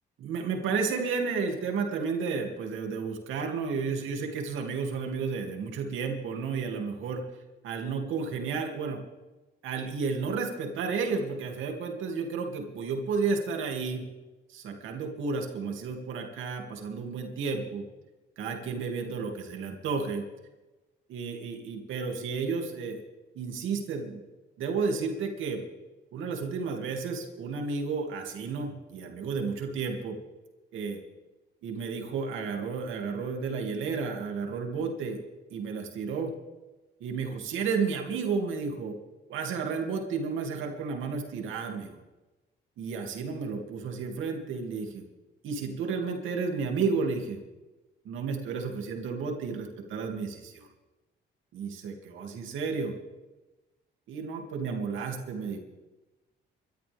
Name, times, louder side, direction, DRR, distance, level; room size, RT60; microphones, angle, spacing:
voice 1, 0.2-7.2 7.6-9.0 9.6-14.0 14.5-17.8 18.4-20.3 21.1-23.0 23.3-24.3 24.6-25.6 26.1-30.2 30.7-31.0 31.6-35.2 35.5-36.3 37.0-39.0 39.3-41.9 42.8-45.0 45.4-47.4 48.0-50.7 51.5-52.9 54.1-55.6, right 5 dB, 80° right, 2 dB, 2.7 m, -32 dB
26.0 x 13.0 x 3.6 m, 1.1 s
cardioid pair, 90°, 20 cm